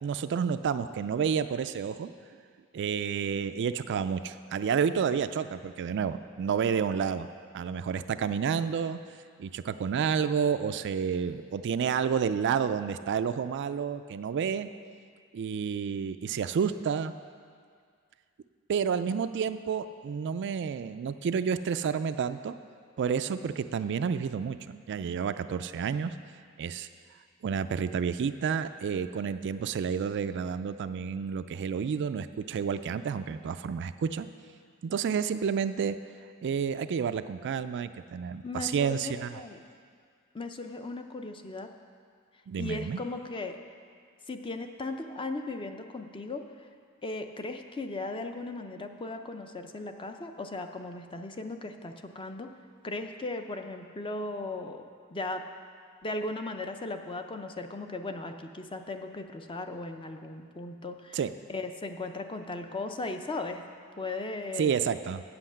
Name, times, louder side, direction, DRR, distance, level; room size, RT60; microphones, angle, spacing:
voice 1, 0.0-2.1 2.7-7.3 7.5-9.0 9.4-14.7 15.3-17.1 18.7-22.5 23.0-26.1 26.6-26.9 27.4-34.3 34.8-36.0 36.4-39.4 42.5-43.0 61.1-61.3 64.6-65.2, right 6 dB, 55° right, 11 dB, 0.3 m, -30 dB
voice 2, 38.4-39.6 40.3-41.7 42.6-43.6 44.3-46.7 47.0-52.5 52.8-55.4 56.0-61.2 61.5-63.7 64.0-64.8, left 2 dB, 25° left, 6 dB, 0.5 m, -37 dB
8.5 x 7.8 x 7.3 m, 2.1 s
head